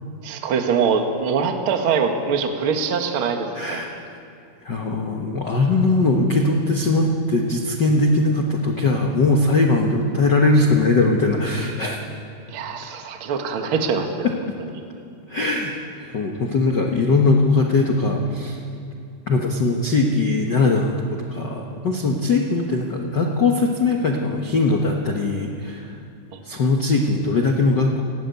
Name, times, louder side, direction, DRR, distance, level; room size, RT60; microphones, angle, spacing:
voice 1, 0.2-3.8 12.5-14.3 26.3-26.4, right 5 dB, 45° right, 4 dB, 1.9 m, -23 dB
voice 2, 3.5-3.9 4.6-12.0 14.2-14.3 15.3-18.6 19.3-20.9 21.3-26.0 26.4-28.0, left 3 dB, 75° left, 1 dB, 1.0 m, -20 dB
18.5 x 17.5 x 9.3 m, 2.6 s
omnidirectional pair, 4.1 m